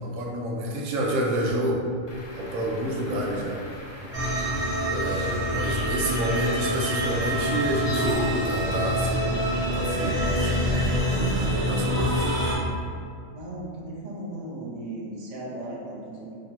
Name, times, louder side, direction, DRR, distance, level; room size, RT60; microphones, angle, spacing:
voice 1, 0.0-1.9 2.4-3.6 4.9-9.2 9.7-10.7 11.2-12.3, right 1 dB, 80° right, -1 dB, 1.0 m, -29 dB
Truck / Idling, 2.1-8.1, left 2 dB, 60° left, 0.4 m, -43 dB
sound 1, 4.1-12.6, equal, 25° right, 1.0 m, -25 dB
voice 2, 5.6-6.0 13.3-16.3, right 1 dB, 45° right, -5 dB, 0.5 m, -37 dB
3.0 x 2.4 x 4.2 m, 2.3 s
omnidirectional pair, 1.5 m